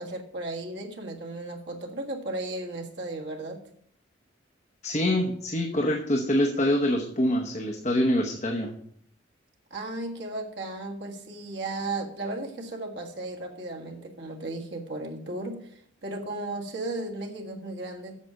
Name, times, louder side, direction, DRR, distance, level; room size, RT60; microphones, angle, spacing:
voice 1, 0.0-3.6 9.7-18.2, right 2 dB, 65° right, 1 dB, 1.7 m, -35 dB
voice 2, 4.8-8.7, left 1 dB, 35° left, 3 dB, 0.9 m, -25 dB
8.3 x 6.5 x 6.4 m, 0.65 s
head